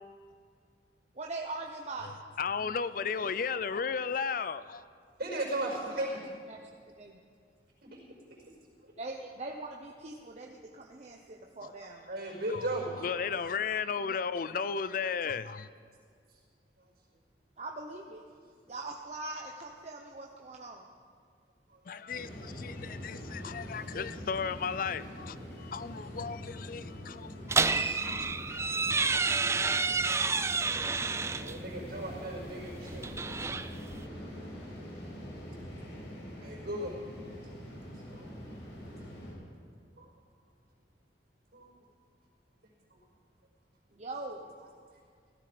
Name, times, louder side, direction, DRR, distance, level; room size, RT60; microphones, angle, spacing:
voice 1, 1.1-2.1 5.9-6.2 6.5-6.6 7.0-7.2 9.0-12.1 17.6-18.2 18.7-20.9 43.9-44.4, right 2 dB, 40° right, 0.9 m, -42 dB
voice 2, 2.4-4.8 12.5-12.7 13.0-15.7 21.9-29.0, left 6 dB, 50° left, 0.4 m, -35 dB
voice 3, 5.2-6.2 8.8-8.9 12.1-12.9 31.3-33.4 36.4-36.9 38.1-38.3 40.0-40.1 41.5-41.7, right 1 dB, 60° right, 5.1 m, -36 dB
sound 1, 22.1-39.3, equal, 80° left, 5.4 m, -44 dB
sound 2, 27.5-31.6 32.9-34.0, right 4 dB, 15° right, 0.4 m, -29 dB
17.0 x 15.0 x 5.1 m
head